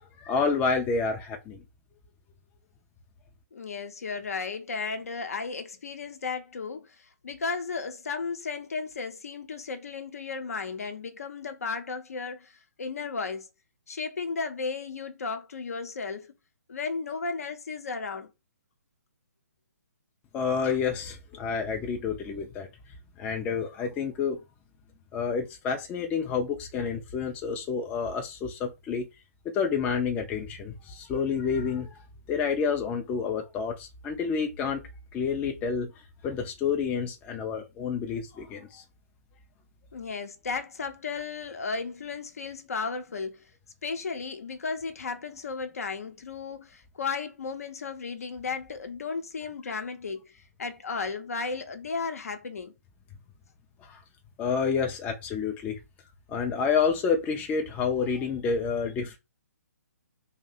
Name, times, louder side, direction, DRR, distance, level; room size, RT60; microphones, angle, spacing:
voice 1, 0.2-1.6 20.3-22.7 23.2-24.4 25.1-29.1 29.5-32.0 32.3-34.8 35.1-35.9 36.2-38.8 49.7-49.8 53.8-54.0 54.4-55.8 56.3-59.2, left 5 dB, 15° left, 0.4 m, -29 dB
voice 2, 3.5-13.5 13.9-16.3 16.7-18.3 39.9-43.5 43.8-52.7, left 4 dB, 65° left, 0.7 m, -34 dB
2.7 x 2.1 x 3.9 m
figure-of-eight pair, 130°, 9 cm